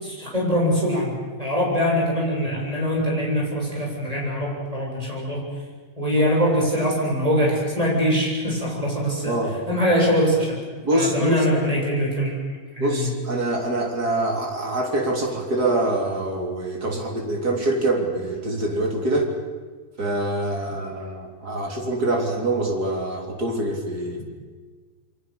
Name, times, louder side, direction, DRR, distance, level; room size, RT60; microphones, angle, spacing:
voice 1, 0.0-5.4 6.0-9.4 9.7-10.6 10.9-12.3 12.8-13.1, equal, 20° right, -3 dB, 7.7 m, -23 dB
voice 2, 9.3-9.6 10.8-11.5 12.8-19.3 20.0-24.2, right 1 dB, 75° right, 2 dB, 4.1 m, -25 dB
27.5 x 24.0 x 6.8 m, 1.4 s
omnidirectional pair, 1.7 m